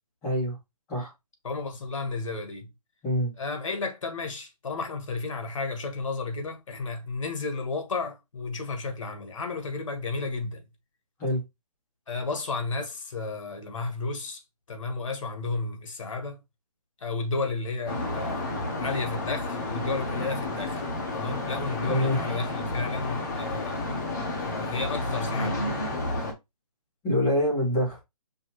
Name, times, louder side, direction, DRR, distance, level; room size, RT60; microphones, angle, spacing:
voice 1, 0.2-0.6 0.9-1.1 3.0-3.3 11.2-11.4 21.9-22.2 27.0-28.0, left 1 dB, 10° left, 1.5 m, -25 dB
voice 2, 1.4-2.7 3.4-10.6 12.1-14.4 14.7-16.4 17.0-20.9 21.1-25.6, left 3 dB, 55° left, 1.4 m, -33 dB
sound 1, 17.9-26.3, left 2 dB, 30° left, 1.1 m, -31 dB
5.5 x 2.8 x 3.1 m
hypercardioid pair, 170°, 20 cm